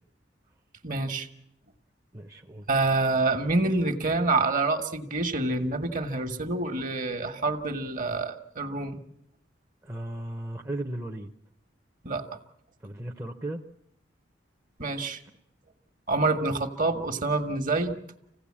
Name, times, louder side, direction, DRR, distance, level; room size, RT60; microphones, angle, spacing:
voice 1, 0.8-1.3 2.7-9.0 12.0-12.2 14.8-15.2 16.1-18.0, right 3 dB, 45° right, 8 dB, 1.4 m, -27 dB
voice 2, 2.1-2.7 9.8-11.3 12.8-13.6, right 1 dB, 15° right, 3 dB, 0.8 m, -36 dB
25.5 x 17.0 x 8.6 m, 0.79 s
head